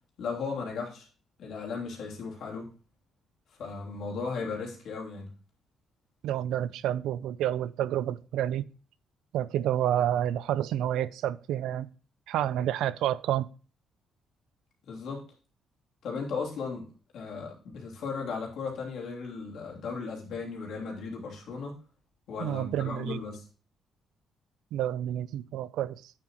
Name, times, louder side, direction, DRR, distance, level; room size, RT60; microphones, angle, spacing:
voice 1, 0.2-1.1 1.4-2.7 3.5-5.3 14.8-15.2 16.0-21.8 22.3-23.5, left 4 dB, 70° left, 3.1 m, -36 dB
voice 2, 6.2-8.6 9.3-11.9 12.3-13.5 22.4-23.2 24.7-26.1, right 11 dB, 85° right, 0.4 m, -29 dB
9.0 x 7.5 x 3.0 m
cardioid pair, 90°, 0 cm